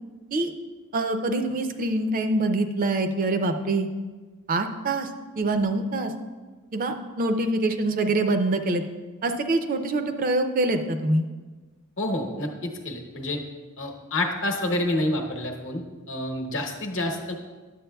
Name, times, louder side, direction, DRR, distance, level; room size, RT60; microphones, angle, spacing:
voice 1, 0.9-3.9 4.5-5.1 5.4-6.1 6.7-8.8 9.2-11.3, right 2 dB, 40° right, 7 dB, 0.4 m, -25 dB
voice 2, 12.0-13.4 13.8-17.4, left 1 dB, 60° left, 3 dB, 0.9 m, -28 dB
10.0 x 7.3 x 2.3 m, 1.3 s
head